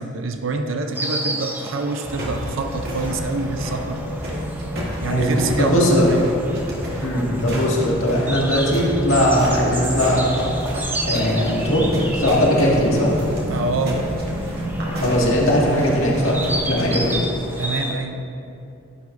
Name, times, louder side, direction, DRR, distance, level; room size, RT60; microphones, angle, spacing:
voice 1, 0.0-4.0 5.0-6.2 13.5-14.1 17.6-18.2, right 3 dB, 70° right, 5 dB, 0.5 m, -26 dB
Insect, 0.9-17.9, right 1 dB, 10° right, 0.6 m, -32 dB
sound 1, 2.0-17.2, equal, 50° right, 2.1 m, -29 dB
voice 2, 5.6-6.1 7.0-10.5 11.0-13.1 15.0-17.2, equal, 80° left, -4 dB, 1.9 m, -19 dB
11.5 x 9.5 x 2.6 m, 2.7 s
head